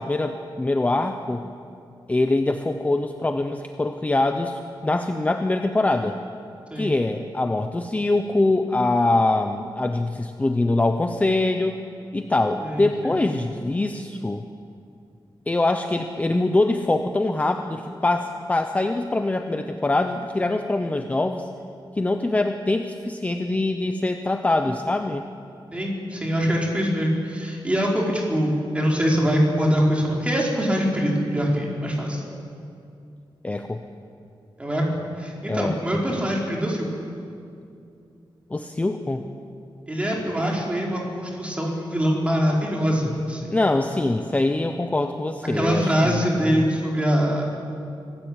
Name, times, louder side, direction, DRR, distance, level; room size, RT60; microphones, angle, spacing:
voice 1, 0.0-1.5 2.1-6.2 6.8-11.8 12.1-14.4 15.5-21.5 22.0-25.3 33.4-33.8 35.5-35.8 38.5-39.2 43.5-46.6, left 2 dB, 15° left, 6 dB, 0.8 m, -23 dB
voice 2, 12.6-13.1 25.7-32.2 34.6-36.9 39.9-43.5 45.5-47.4, equal, 15° right, -2 dB, 4.4 m, -23 dB
26.0 x 17.0 x 8.9 m, 2.5 s
wide cardioid pair, 175°, 9 cm